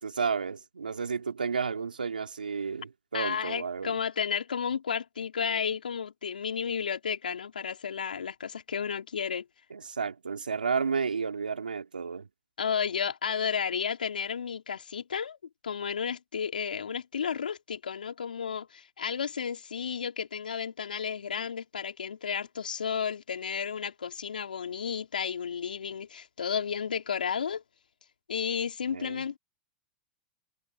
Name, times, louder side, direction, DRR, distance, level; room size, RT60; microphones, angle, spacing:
voice 1, 0.0-3.9 9.7-12.3 28.9-29.2, right 5 dB, 90° right, 3.2 m, -32 dB
voice 2, 3.1-9.4 12.6-15.4 15.6-27.6 28.3-29.4, left 7 dB, 85° left, 3.8 m, -32 dB
hypercardioid pair, 95°, 5 cm